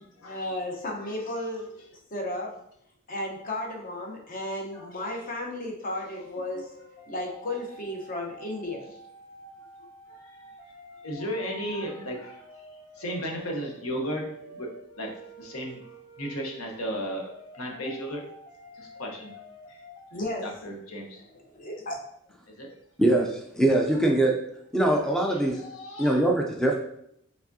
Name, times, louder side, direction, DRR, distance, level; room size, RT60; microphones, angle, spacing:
voice 1, 0.0-1.7 2.1-2.5 3.1-6.7 7.1-8.9 20.1-20.4 21.4-22.0, left 1 dB, 40° left, 0 dB, 0.9 m, -34 dB
voice 2, 4.7-5.1 10.1-10.5 11.0-12.6 12.9-15.9 16.2-18.2 18.7-19.3 19.7-19.8 20.4-21.2 22.5-22.7 23.7-24.0 25.0-26.2, equal, 80° left, 1 dB, 0.9 m, -36 dB
sound 1, 5.8-20.2, equal, 25° left, 1.4 m, -49 dB
voice 3, 23.0-24.4 24.7-25.6 26.0-26.8, right 1 dB, 5° left, 1 dB, 0.4 m, -22 dB
4.8 x 3.4 x 2.7 m, 0.73 s
head